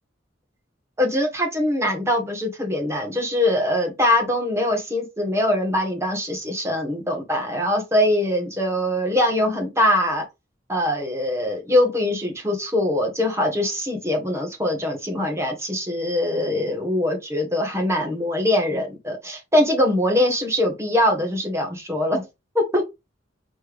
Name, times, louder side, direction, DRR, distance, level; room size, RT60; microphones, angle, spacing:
voice 1, 1.0-10.2 10.7-22.2 22.5-22.8, left 1 dB, 15° right, 1.3 m, -22 dB
4.3 x 3.3 x 3.5 m
head